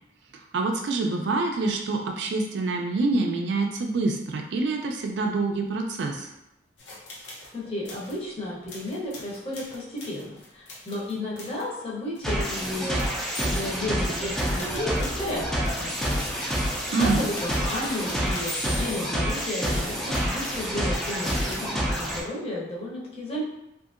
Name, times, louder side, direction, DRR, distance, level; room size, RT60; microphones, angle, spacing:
voice 1, 0.5-6.3 16.9-17.2, right 3 dB, 65° right, 2 dB, 0.4 m, -26 dB
sound 1, 6.8-7.5 7.8-8.2 8.7-11.7 12.2-12.3 13.0-14.1 14.6-21.7, left 1 dB, 75° left, 0.7 m, -42 dB
voice 2, 7.5-13.0 13.3-16.1 17.0-23.4, left 1 dB, 35° left, -6 dB, 0.8 m, -33 dB
sound 2, 12.2-22.2, equal, ahead, 0.4 m, -28 dB
2.7 x 2.5 x 2.4 m, 0.86 s
head